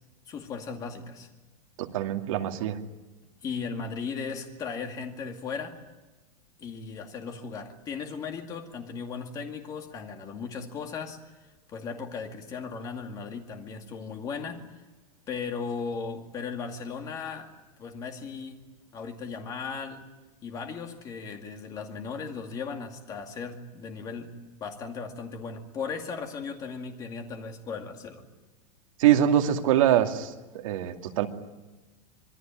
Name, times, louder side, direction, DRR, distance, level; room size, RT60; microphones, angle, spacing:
voice 1, 0.3-1.3 3.4-5.8 6.6-11.2 11.7-14.7 15.3-17.5 17.8-18.6 18.9-20.0 20.4-24.3 24.6-28.3, left 5 dB, 20° left, 4 dB, 2.2 m, -36 dB
voice 2, 1.8-2.8 29.0-31.3, right 11 dB, 55° right, 4 dB, 2.3 m, -24 dB
26.0 x 21.5 x 9.0 m, 1.2 s
supercardioid pair, 180°, 20 cm